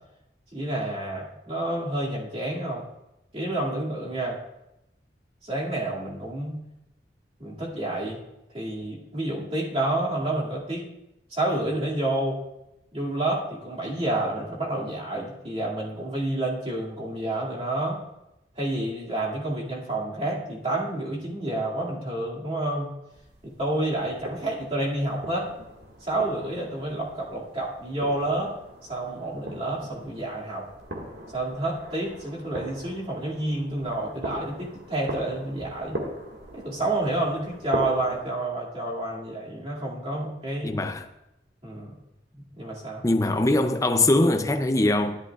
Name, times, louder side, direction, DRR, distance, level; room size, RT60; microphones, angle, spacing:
voice 1, 0.5-2.8 3.3-4.4 5.4-6.6 7.4-8.2 8.5-10.9 11.3-12.4 12.9-18.0 18.6-22.9 23.4-25.5 26.0-28.6 28.9-30.7 31.3-36.0 36.5-40.8 41.6-41.9 42.3-43.1, right 1 dB, 35° right, 2.3 m, -29 dB
sound 1, 23.1-38.2, right 1 dB, 70° right, 1.9 m, -40 dB
voice 2, 40.6-41.1 43.0-45.2, left 2 dB, 20° left, 0.5 m, -22 dB
13.5 x 11.5 x 2.4 m
head